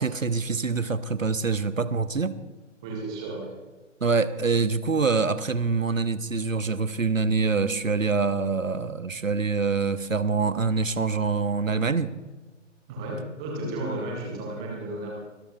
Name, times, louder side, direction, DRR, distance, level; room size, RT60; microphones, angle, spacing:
voice 1, 0.0-2.3 4.0-12.1, right 4 dB, 85° right, 13 dB, 0.9 m, -25 dB
voice 2, 2.8-3.5 12.9-15.1, right 2 dB, 5° right, -2 dB, 0.5 m, -33 dB
23.5 x 13.5 x 2.4 m, 1.1 s
figure-of-eight pair, 135°, 38 cm